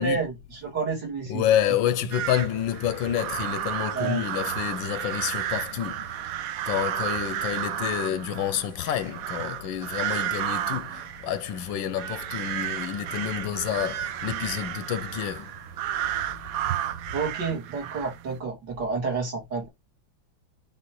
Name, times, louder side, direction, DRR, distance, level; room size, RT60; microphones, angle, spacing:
voice 1, 0.0-1.4 3.9-4.2 17.1-19.7, right 5 dB, 60° right, 3.3 m, -30 dB
voice 2, 1.3-6.2 6.6-15.6, left 10 dB, 80° left, 1.4 m, -28 dB
sound 1, 2.1-18.4, right 11 dB, 75° right, 0.8 m, -32 dB
8.8 x 3.6 x 3.1 m
omnidirectional pair, 2.1 m